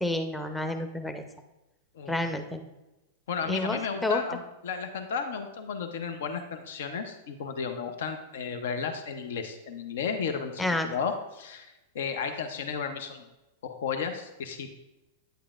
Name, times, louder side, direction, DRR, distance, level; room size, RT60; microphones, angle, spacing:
voice 1, 0.0-1.3 2.1-2.6 3.5-4.2 10.6-10.9, left 1 dB, 5° left, 5 dB, 0.6 m, -30 dB
voice 2, 3.3-13.2 13.6-14.8, left 6 dB, 70° left, 7 dB, 0.6 m, -33 dB
9.1 x 8.5 x 2.4 m, 1.0 s
hypercardioid pair, 100°, 0 cm